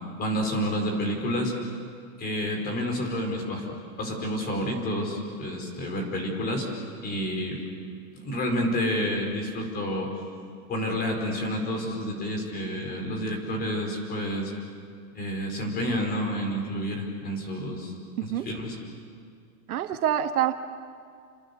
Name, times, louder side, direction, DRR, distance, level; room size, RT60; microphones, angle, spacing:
voice 1, 0.2-1.5 2.2-6.7 7.0-7.6 8.2-10.1 10.7-14.5 15.1-18.8, equal, 20° left, 3 dB, 4.7 m, -29 dB
voice 2, 19.7-20.5, right 10 dB, 80° right, 7 dB, 1.7 m, -26 dB
29.0 x 26.0 x 7.0 m, 2.2 s
supercardioid pair, 165°, 44 cm